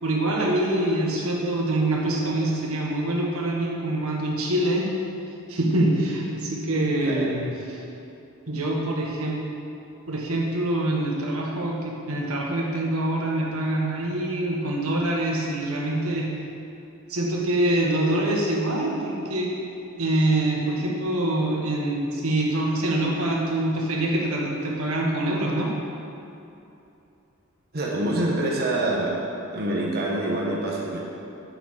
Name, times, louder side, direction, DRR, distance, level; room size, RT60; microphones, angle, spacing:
voice 1, 0.0-4.9 5.5-7.8 8.5-9.4 10.1-16.3 17.1-19.5 20.0-25.7, right 1 dB, 85° right, -2 dB, 1.5 m, -25 dB
voice 2, 27.7-29.2 29.5-31.0, right 1 dB, 45° right, -3 dB, 1.2 m, -26 dB
7.8 x 6.5 x 6.6 m, 2.8 s
head